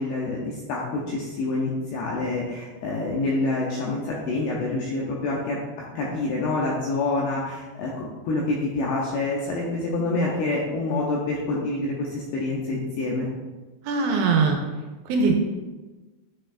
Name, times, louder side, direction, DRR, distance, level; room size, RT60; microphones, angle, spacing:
voice 1, 0.0-5.6 6.0-13.3, left 2 dB, 80° left, -4 dB, 2.4 m, -27 dB
voice 2, 13.8-14.6 15.1-15.4, right 4 dB, 80° right, 2 dB, 3.2 m, -21 dB
10.5 x 4.7 x 2.5 m, 1.2 s
omnidirectional pair, 5.6 m